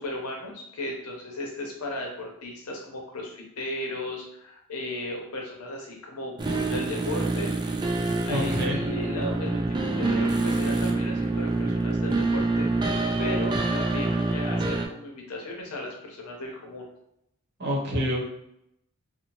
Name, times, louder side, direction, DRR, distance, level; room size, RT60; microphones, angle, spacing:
voice 1, 0.0-7.5 8.3-12.7 13.2-16.9, left 1 dB, 85° left, 0 dB, 0.7 m, -35 dB
sound 1, 6.4-14.9, right 2 dB, 20° right, 0.3 m, -26 dB
voice 2, 8.3-8.8 17.6-18.2, equal, 50° right, -3 dB, 0.8 m, -27 dB
2.8 x 2.1 x 3.0 m, 0.77 s
head